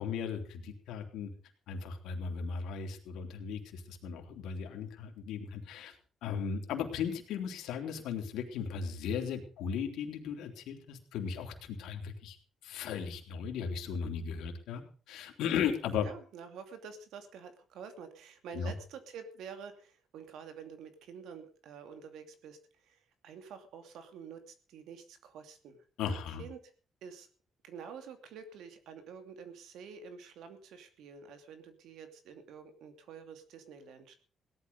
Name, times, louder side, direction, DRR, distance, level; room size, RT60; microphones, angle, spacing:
voice 1, 0.0-1.3 1.7-5.9 6.2-12.4 12.6-14.8 15.1-16.1 18.5-18.7 26.0-26.4, left 7 dB, 85° left, 4 dB, 3.2 m, -36 dB
voice 2, 16.0-25.8 26.1-26.6 27.0-27.3 27.6-34.1, right 6 dB, 85° right, 8 dB, 2.6 m, -48 dB
17.5 x 12.0 x 5.3 m, 0.40 s
cardioid pair, 90°, 0 cm